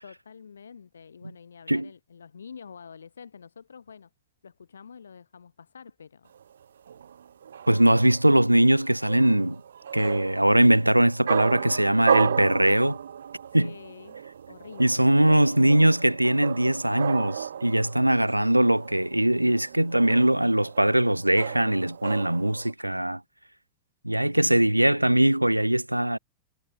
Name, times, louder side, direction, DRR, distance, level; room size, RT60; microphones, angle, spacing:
voice 1, 0.0-4.1 4.4-6.3 13.5-14.2 14.5-15.6 24.4-24.5, left 6 dB, 70° left, 2.8 m, -47 dB
sound 1, 6.3-22.7, right 8 dB, 65° right, 1.7 m, -34 dB
voice 2, 7.7-9.6 9.9-13.0 13.5-13.7 14.8-23.2 24.0-26.2, right 1 dB, 85° right, 0.6 m, -21 dB
figure-of-eight pair, 90°, 0 cm